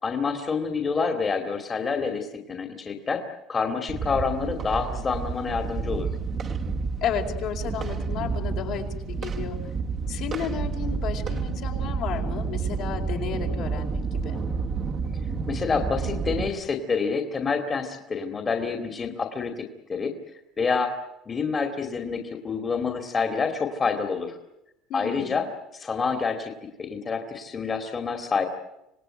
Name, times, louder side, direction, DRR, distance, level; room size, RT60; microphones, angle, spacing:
voice 1, 0.0-3.2 3.5-6.1 15.5-20.1 20.6-20.9 21.3-24.4 24.9-25.5 25.7-26.5 26.8-28.5, left 5 dB, 25° left, 5 dB, 2.5 m, -27 dB
sound 1, 3.9-16.5, right 5 dB, 40° right, 1.8 m, -30 dB
voice 2, 7.0-9.6 10.1-14.4 24.9-25.4, left 8 dB, 65° left, 2 dB, 4.7 m, -33 dB
26.5 x 18.5 x 9.0 m, 0.88 s
cardioid pair, 120°, 0 cm